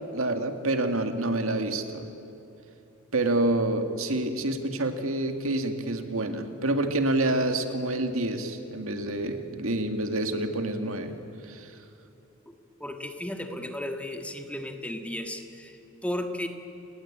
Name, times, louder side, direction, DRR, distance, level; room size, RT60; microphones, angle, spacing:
voice 1, 0.1-2.1 3.1-11.1 11.4-11.7, right 2 dB, 70° right, 6 dB, 2.1 m, -27 dB
voice 2, 12.4-16.5, left 1 dB, 5° left, 5 dB, 1.7 m, -35 dB
29.5 x 19.5 x 8.8 m, 2.8 s
head